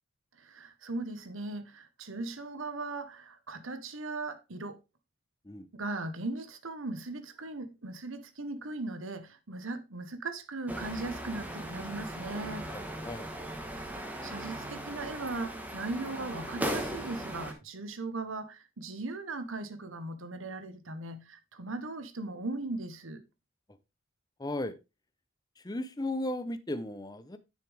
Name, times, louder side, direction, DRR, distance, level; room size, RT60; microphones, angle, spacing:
voice 1, 0.4-4.8 5.7-12.7 13.7-23.2, right 2 dB, 75° right, 1.2 m, -38 dB
sound 1, 10.7-17.5, right 1 dB, 10° right, 1.3 m, -38 dB
voice 2, 24.4-24.8 25.6-27.4, left 1 dB, 20° left, 0.7 m, -35 dB
9.9 x 6.8 x 3.5 m
head